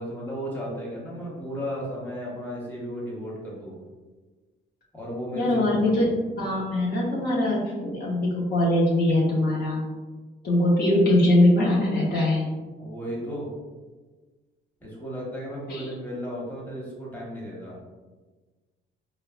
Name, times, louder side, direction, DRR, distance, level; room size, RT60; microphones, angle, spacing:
voice 1, 0.0-3.8 4.9-6.1 12.8-13.5 14.8-17.8, equal, 10° left, -6 dB, 1.1 m, -34 dB
voice 2, 5.4-6.1 6.4-9.8 10.4-12.5 15.7-15.9, left 1 dB, 55° left, -6 dB, 0.8 m, -22 dB
4.1 x 2.1 x 2.4 m, 1.3 s
cardioid pair, 90°, 20 cm